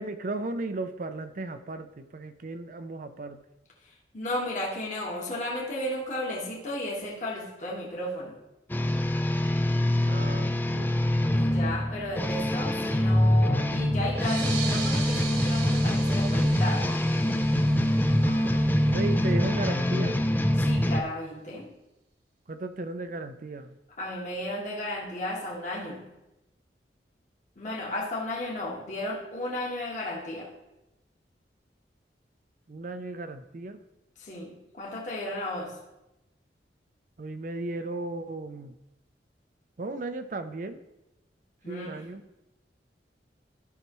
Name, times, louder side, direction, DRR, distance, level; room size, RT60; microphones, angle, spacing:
voice 1, 0.0-3.4 10.0-11.0 18.2-20.2 22.5-23.8 32.7-33.8 37.2-38.7 39.8-40.8 41.7-42.3, right 2 dB, 50° right, 10 dB, 0.5 m, -35 dB
voice 2, 4.1-8.3 11.3-16.9 20.6-21.7 24.0-26.0 27.6-30.5 34.2-35.7 41.6-42.0, left 1 dB, 45° left, -3 dB, 1.6 m, -34 dB
sound 1, 8.7-21.0, left 1 dB, 10° left, 0.4 m, -24 dB
sound 2, 14.1-19.2, right 5 dB, 85° right, 1.7 m, -39 dB
13.0 x 5.7 x 3.1 m, 0.96 s
head